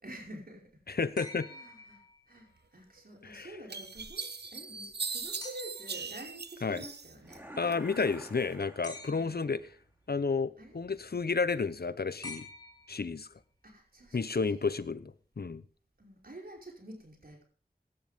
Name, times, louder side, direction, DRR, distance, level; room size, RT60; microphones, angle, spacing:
voice 1, 0.0-0.8 1.5-7.5 9.1-9.4 10.6-10.8 13.6-14.7 16.0-17.4, right 1 dB, 65° right, 5.3 m, -49 dB
voice 2, 0.9-1.5 3.2-3.5 6.6-6.8 7.6-9.6 10.1-12.4 12.9-13.3 14.1-15.6, left 4 dB, 70° left, 0.8 m, -31 dB
sound 1, 1.2-2.5 5.4-6.0 8.8-9.6 12.2-13.3 14.9-15.0, left 2 dB, 25° left, 2.7 m, -47 dB
sound 2, 3.0-3.1 3.7-7.4 7.7-8.5, right 5 dB, 80° right, 0.9 m, -40 dB
sound 3, 7.2-9.6, equal, 10° right, 3.4 m, -49 dB
17.0 x 12.0 x 3.6 m
wide cardioid pair, 50°, 17 cm